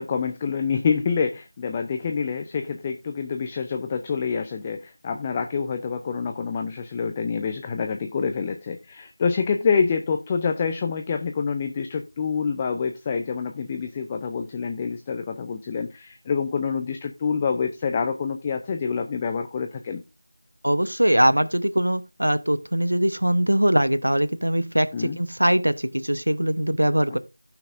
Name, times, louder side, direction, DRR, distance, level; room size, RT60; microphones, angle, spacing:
voice 1, 0.0-20.0 24.9-25.2, left 5 dB, 15° left, 0.4 m, -27 dB
voice 2, 20.6-27.2, right 1 dB, 80° right, 1.0 m, -22 dB
16.5 x 5.8 x 2.5 m
figure-of-eight pair, 170°, 0 cm